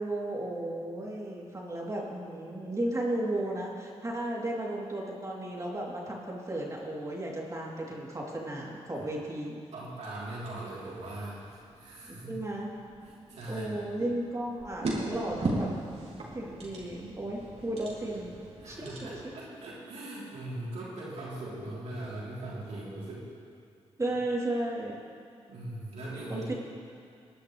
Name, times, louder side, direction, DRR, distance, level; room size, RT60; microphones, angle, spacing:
voice 1, 0.0-9.6 12.1-12.7 13.5-15.7 16.3-18.3 18.6-19.3 24.0-25.0 26.3-26.5, right 1 dB, 30° right, -4 dB, 3.4 m, -34 dB
voice 2, 9.7-12.3 13.0-13.9 18.6-23.3 25.5-26.5, right 1 dB, 80° right, -7 dB, 3.7 m, -40 dB
sound 1, 10.0-19.2, right 2 dB, 65° right, 3.1 m, -39 dB
20.0 x 11.0 x 3.4 m, 2.3 s
cardioid pair, 55°, 11 cm